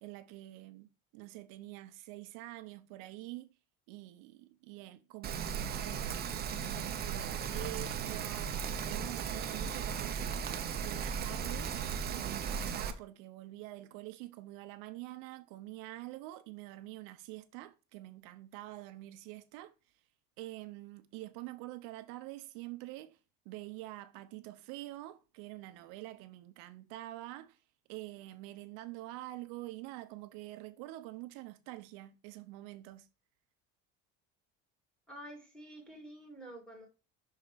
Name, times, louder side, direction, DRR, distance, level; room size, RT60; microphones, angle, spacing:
voice 1, 0.0-3.5 3.9-6.2 6.6-10.5 10.8-11.7 12.1-19.7 20.4-23.2 23.4-27.6 27.9-33.1, right 17 dB, 85° right, 0.8 m, -46 dB
Rain, 5.2-12.9, right 7 dB, 30° right, 0.7 m, -36 dB
voice 2, 35.1-36.9, right 1 dB, 5° left, 2.3 m, -49 dB
5.7 x 4.1 x 4.9 m
cardioid pair, 150°, 32 cm